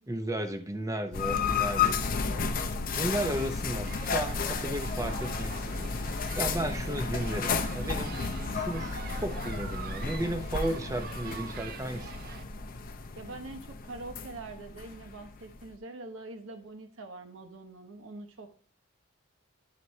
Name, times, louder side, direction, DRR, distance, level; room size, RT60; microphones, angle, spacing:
voice 1, 0.1-2.4 3.0-5.9 6.4-8.2 8.5-12.3, right 1 dB, 15° right, 7 dB, 0.7 m, -34 dB
sound 1, 1.1-8.8, left 6 dB, 85° left, 0.6 m, -49 dB
sound 2, 1.1-15.7, left 5 dB, 40° left, 0.6 m, -33 dB
sound 3, 3.8-12.4, right 8 dB, 45° right, 0.3 m, -46 dB
voice 2, 13.2-18.5, right 2 dB, 70° right, 4 dB, 1.0 m, -44 dB
10.5 x 4.2 x 3.2 m, 0.42 s
head